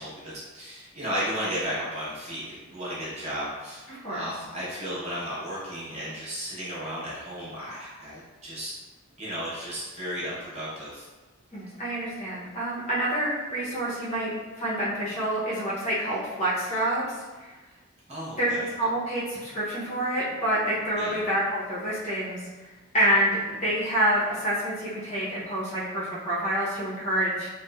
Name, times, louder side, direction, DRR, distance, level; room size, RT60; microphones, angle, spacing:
voice 1, 0.0-8.7 9.2-11.1 18.1-18.7 21.0-21.2, equal, 30° right, -8 dB, 0.7 m, -34 dB
voice 2, 3.9-4.3 11.5-17.1 17.4-17.5 18.4-18.5 18.8-22.4 22.9-27.5, right 1 dB, 30° left, -8 dB, 0.6 m, -27 dB
2.9 x 2.1 x 2.2 m, 1.3 s
head